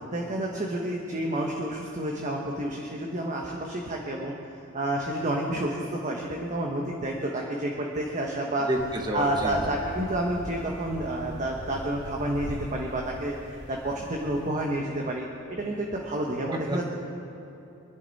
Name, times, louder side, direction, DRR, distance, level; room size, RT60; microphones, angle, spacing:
voice 1, 0.1-4.3 4.7-8.7 9.1-13.4 13.7-16.8, right 1 dB, 35° right, -1 dB, 1.2 m, -29 dB
voice 2, 8.6-9.8 16.5-16.8, right 1 dB, 20° right, 2 dB, 1.5 m, -30 dB
sound 1, 8.7-14.5, equal, 50° left, 2.4 m, -41 dB
25.5 x 11.0 x 4.2 m, 2.9 s
head